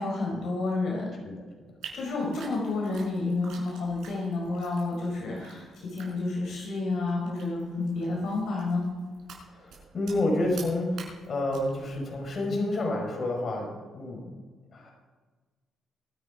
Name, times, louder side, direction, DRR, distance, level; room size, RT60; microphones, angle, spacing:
voice 1, 0.0-1.1 1.9-8.9, left 3 dB, 75° left, -2 dB, 4.4 m, -30 dB
sound 1, 1.8-12.6, right 5 dB, 75° right, 5.2 m, -49 dB
voice 2, 9.5-14.3 14.7-14.9, left 1 dB, 45° left, 0 dB, 5.0 m, -29 dB
23.0 x 9.6 x 5.0 m, 1.4 s
cardioid pair, 90°, 0 cm